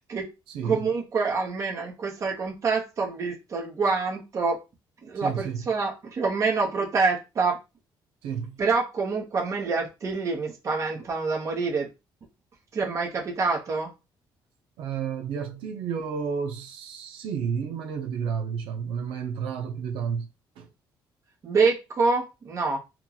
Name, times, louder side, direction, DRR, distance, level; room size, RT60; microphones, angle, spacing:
voice 1, 0.6-4.6 5.0-7.6 8.6-11.9 12.7-13.9 21.4-22.8, right 4 dB, 35° right, 0.9 m, -26 dB
voice 2, 5.2-5.6 8.2-8.6 14.8-20.3 20.6-20.7, right 7 dB, 90° right, 0.6 m, -31 dB
3.0 x 2.3 x 3.8 m
cardioid pair, 170°, 9 cm